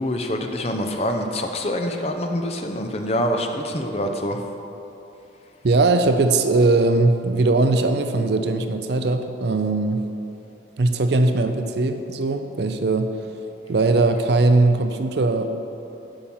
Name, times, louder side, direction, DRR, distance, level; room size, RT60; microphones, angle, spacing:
voice 1, 0.0-4.4, equal, 35° left, 4 dB, 0.7 m, -25 dB
voice 2, 5.6-10.0 10.8-13.2 13.7-15.5, right 2 dB, 60° right, 8 dB, 0.5 m, -20 dB
8.9 x 5.6 x 7.1 m, 2.9 s
head